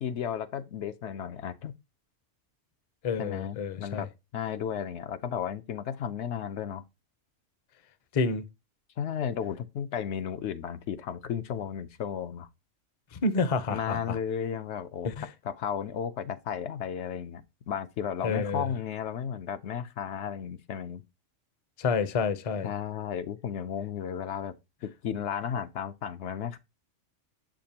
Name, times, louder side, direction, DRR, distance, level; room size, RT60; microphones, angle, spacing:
voice 1, 0.0-1.7 3.2-4.1 4.3-6.8 9.0-12.5 13.7-17.4 17.7-21.0 22.6-24.5 25.0-26.6, left 8 dB, 70° left, 0.8 m, -34 dB
voice 2, 3.0-4.1 8.1-8.4 13.1-14.2 15.0-15.3 18.2-18.7 21.8-22.7, left 4 dB, 40° left, 0.5 m, -29 dB
7.1 x 5.1 x 2.8 m
omnidirectional pair, 1.2 m